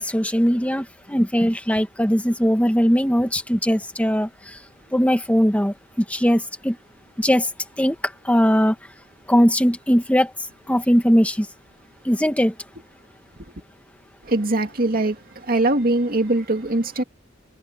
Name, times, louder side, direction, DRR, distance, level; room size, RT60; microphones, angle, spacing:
voice 1, 0.0-4.3 4.9-5.7 6.1-6.7 7.2-7.5 7.8-8.0 8.3-8.7 9.3-10.3 10.7-11.5 12.1-12.5, equal, 5° left, 1.8 m, -19 dB
voice 2, 14.3-15.2 15.5-17.0, right 2 dB, 45° right, 2.4 m, -21 dB
head